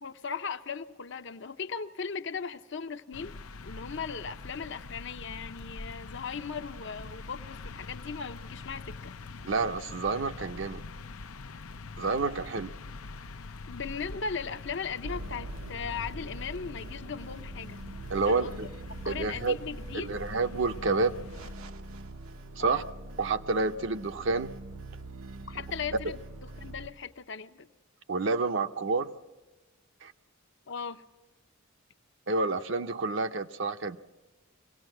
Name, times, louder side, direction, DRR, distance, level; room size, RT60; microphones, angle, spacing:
voice 1, 0.0-3.3 3.6-9.2 13.7-17.8 18.2-18.7 19.0-20.2 22.6-22.8 25.5-27.7 30.7-31.0, left 6 dB, 55° left, 10 dB, 0.8 m, -38 dB
sound 1, 3.1-21.5, left 3 dB, 90° left, 0.7 m, -44 dB
voice 2, 9.4-10.8 12.0-12.7 18.1-18.7 19.1-19.6 19.9-21.1 22.6-22.8 23.2-24.5 28.1-29.1 30.0-30.1 32.3-34.0, right 3 dB, 60° right, 8 dB, 0.7 m, -29 dB
sound 2, 15.0-26.9, right 2 dB, 85° right, 1.0 m, -43 dB
24.5 x 18.0 x 7.8 m, 1.2 s
head